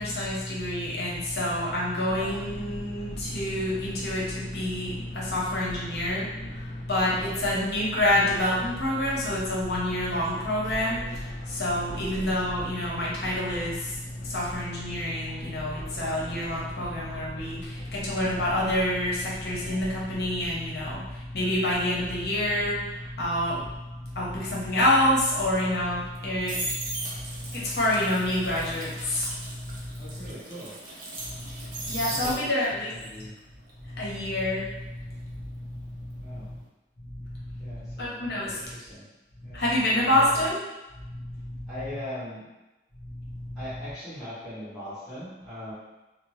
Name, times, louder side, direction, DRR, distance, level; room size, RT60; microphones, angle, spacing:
voice 1, 0.0-30.1 31.2-32.9 33.2-33.3 33.8-36.6 37.0-38.6 39.4-40.6 40.9-41.7 43.0-43.6, left 1 dB, 65° left, -5 dB, 0.8 m, -28 dB
sound 1, 2.0-21.0, left 1 dB, 85° left, 0.4 m, -43 dB
voice 2, 7.2-8.0 11.7-11.9 30.0-30.7 32.1-32.5 32.9-33.4 36.2-36.5 37.6-39.0 39.4-39.6 40.1-40.4 41.7-42.5 43.5-45.7, left 1 dB, ahead, -14 dB, 1.3 m, -40 dB
sound 2, 26.0-32.8 33.1-36.0 36.3-36.6, right 2 dB, 50° right, 0.5 m, -38 dB
2.8 x 2.0 x 3.1 m, 1.0 s
head